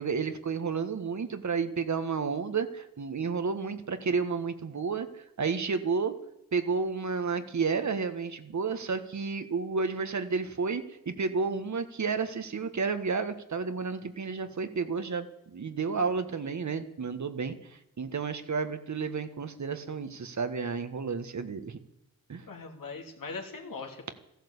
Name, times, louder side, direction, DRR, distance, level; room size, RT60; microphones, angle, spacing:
voice 1, 0.0-6.1 6.5-21.8 22.3-22.5, right 5 dB, 55° right, 9 dB, 1.5 m, -31 dB
voice 2, 22.5-24.1, left 4 dB, 70° left, 2 dB, 3.1 m, -40 dB
14.5 x 11.5 x 8.2 m, 0.84 s
cardioid pair, 60°, 34 cm